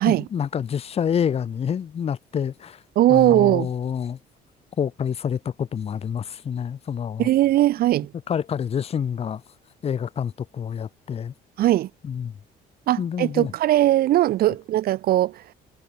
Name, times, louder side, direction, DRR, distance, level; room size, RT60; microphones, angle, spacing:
voice 1, 0.1-2.8 3.1-4.2 4.8-7.3 8.3-9.4 9.8-11.3 12.0-12.3 13.0-13.5, left 8 dB, 35° left, 0.9 m, -27 dB
voice 2, 3.0-3.7 7.2-8.1 11.6-11.9 12.9-15.4, right 14 dB, 65° right, 0.7 m, -19 dB
cardioid pair, 110°, 17 cm